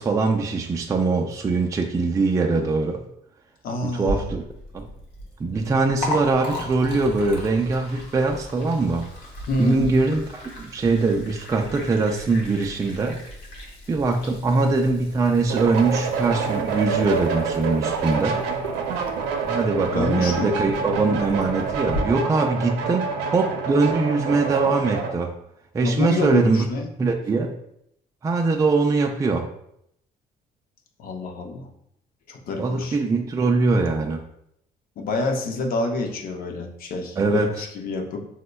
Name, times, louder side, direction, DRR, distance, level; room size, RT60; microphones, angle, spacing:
voice 1, 0.0-3.0 3.8-4.5 4.7-4.8 5.4-9.1 9.6-10.2 10.6-13.2 13.9-18.4 19.5-25.3 25.7-26.7 27.0-27.5 28.2-29.5 32.6-34.2 37.2-37.5, right 3 dB, 20° right, 2 dB, 0.3 m, -22 dB
voice 2, 3.6-4.3 9.5-9.9 19.9-20.5 25.8-26.9 31.0-31.7 32.3-33.0 35.0-38.2, left 2 dB, 60° left, 4 dB, 0.6 m, -27 dB
Liquid, 4.0-22.0, equal, 85° left, 0.9 m, -37 dB
sound 1, 15.5-25.1, right 5 dB, 85° right, 0.5 m, -27 dB
5.0 x 2.1 x 2.2 m, 0.74 s
cardioid pair, 110°, 17 cm